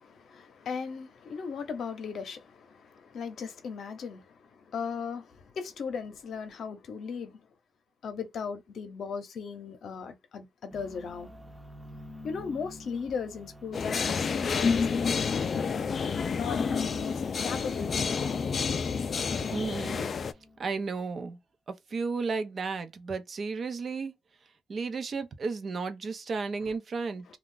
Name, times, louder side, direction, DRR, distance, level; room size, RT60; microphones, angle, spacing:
voice 1, 0.0-7.3 8.0-11.3 12.2-15.9 16.3-18.4, left 6 dB, 65° left, 0.7 m, -37 dB
sound 1, 10.7-20.9, left 1 dB, 5° right, 0.7 m, -50 dB
sound 2, 13.7-20.3, left 5 dB, 45° left, 0.3 m, -29 dB
voice 2, 19.5-20.1 20.6-21.4 21.9-24.1 24.7-27.3, right 4 dB, 45° right, 0.6 m, -33 dB
2.4 x 2.3 x 3.7 m
cardioid pair, 105°, 0 cm